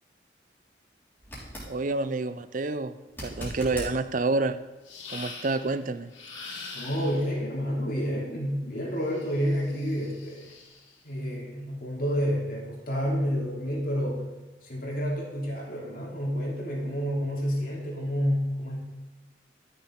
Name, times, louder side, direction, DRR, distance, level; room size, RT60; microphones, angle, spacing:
sound 1, 1.2-1.7 3.1-3.9 6.9-7.0, equal, 10° left, 3.5 m, -38 dB
voice 1, 1.7-3.0 3.2-4.6 5.1-6.1, right 3 dB, 45° right, 13 dB, 0.5 m, -28 dB
sound 2, 4.8-5.7 6.1-7.4 9.0-10.9, left 4 dB, 90° left, 2.7 m, -43 dB
voice 2, 6.7-10.5 11.0-14.2 14.6-18.8, equal, 50° left, -3 dB, 3.0 m, -29 dB
13.0 x 6.7 x 4.6 m, 1.2 s
head